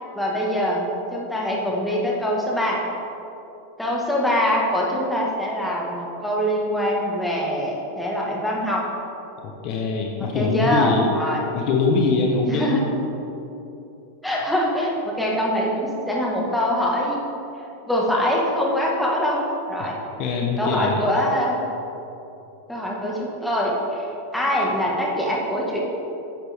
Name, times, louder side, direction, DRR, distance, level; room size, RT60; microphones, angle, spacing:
voice 1, 0.1-2.8 3.8-8.8 10.3-11.5 12.4-12.8 14.2-17.2 17.9-20.0 20.6-21.6 22.7-24.1 24.3-25.8, equal, 5° left, -4 dB, 1.7 m, -23 dB
voice 2, 9.4-11.1 11.5-12.8 19.8-19.9 20.2-21.0, left 4 dB, 45° left, 1 dB, 1.0 m, -23 dB
10.0 x 8.1 x 3.6 m, 2.9 s
supercardioid pair, 130°, 0 cm